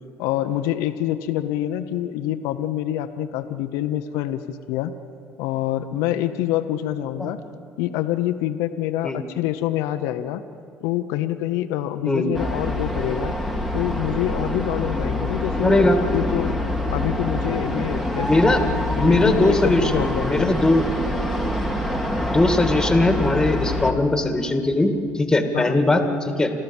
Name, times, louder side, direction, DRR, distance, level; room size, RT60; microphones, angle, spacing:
voice 1, 0.2-4.9 5.4-7.4 7.8-10.4 10.8-13.3 13.7-16.5 16.9-18.7 19.0-20.5 25.5-26.2, left 12 dB, 85° left, 9 dB, 0.8 m, -26 dB
sound 1, 12.3-23.9, left 1 dB, 5° right, 1.9 m, -25 dB
voice 2, 15.6-16.0 18.3-18.6 19.0-20.8 22.2-26.0 26.4-26.5, left 2 dB, 10° left, 6 dB, 2.2 m, -19 dB
30.0 x 13.5 x 7.2 m, 2.3 s
cardioid pair, 110°, 5 cm